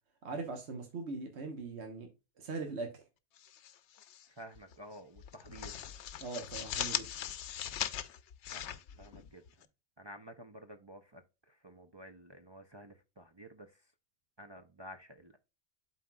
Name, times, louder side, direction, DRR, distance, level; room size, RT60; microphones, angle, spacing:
voice 1, 0.2-2.1 2.4-3.0 6.2-7.1, right 3 dB, 75° right, 1.3 m, -40 dB
sound 1, 3.4-4.3 4.6-4.8 5.2-9.6, left 10 dB, 85° left, 0.9 m, -40 dB
voice 2, 4.3-5.8 8.5-9.4 10.0-13.7 14.4-15.4, right 1 dB, 35° right, 0.5 m, -52 dB
11.5 x 4.0 x 2.2 m
omnidirectional pair, 1.1 m